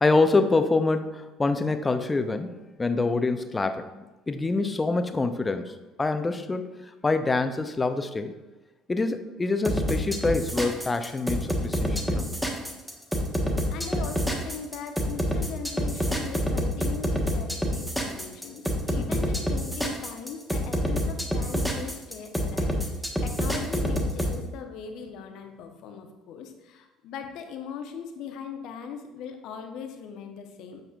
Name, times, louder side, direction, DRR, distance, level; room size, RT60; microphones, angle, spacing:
voice 1, 0.0-2.5 2.8-6.7 7.0-8.3 8.9-12.3 19.0-19.2, left 3 dB, 20° left, 9 dB, 0.6 m, -26 dB
sound 1, 9.6-24.3, equal, 5° right, 1.2 m, -27 dB
voice 2, 13.7-30.8, left 6 dB, 55° left, 5 dB, 0.9 m, -40 dB
8.5 x 6.4 x 2.4 m, 1.1 s
figure-of-eight pair, 55°, 0 cm